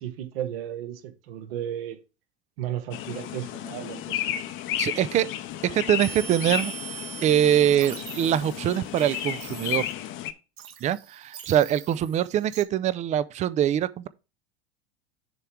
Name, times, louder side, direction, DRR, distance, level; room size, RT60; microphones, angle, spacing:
voice 1, 0.0-2.0 2.6-4.4, right 11 dB, 60° right, 1.2 m, -34 dB
sound 1, 2.9-10.3, left 11 dB, 40° left, 0.7 m, -33 dB
voice 2, 4.8-5.3 5.6-6.7 7.2-9.9 10.8-14.1, right 11 dB, 25° right, 0.4 m, -23 dB
sound 2, 6.0-10.1 10.6-12.6, right 11 dB, 45° right, 1.1 m, -41 dB
6.9 x 3.3 x 6.0 m
hypercardioid pair, 85°, 32 cm